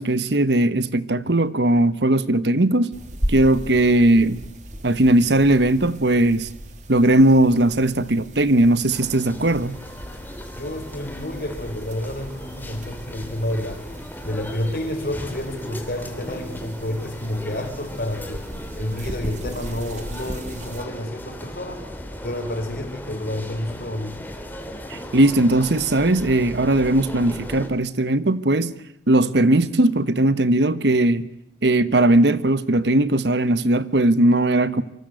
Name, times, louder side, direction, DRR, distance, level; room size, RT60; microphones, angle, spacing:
voice 1, 0.0-2.9 3.3-4.4 4.8-6.5 6.9-9.8 24.9-28.8 29.1-31.3 31.6-34.8, right 1 dB, 75° right, 1.2 m, -18 dB
sound 1, 2.9-20.8, equal, 45° right, 2.5 m, -37 dB
sound 2, 8.9-27.7, equal, 10° left, 2.9 m, -37 dB
voice 2, 10.6-13.8 14.2-18.4 18.8-21.8 22.2-24.2, left 1 dB, 55° left, 4.6 m, -29 dB
27.0 x 24.5 x 7.9 m
head